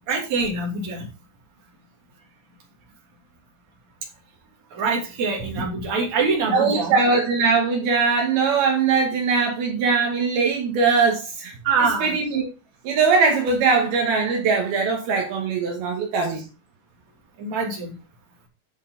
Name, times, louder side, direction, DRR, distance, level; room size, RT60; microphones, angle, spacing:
voice 1, 0.1-1.1 4.7-6.9 11.6-12.1 17.4-17.9, right 4 dB, 50° right, 3.9 m, -24 dB
voice 2, 6.5-11.5 12.0-12.5 12.8-16.4, right 4 dB, 75° right, 3.4 m, -21 dB
11.0 x 6.3 x 4.0 m
omnidirectional pair, 4.5 m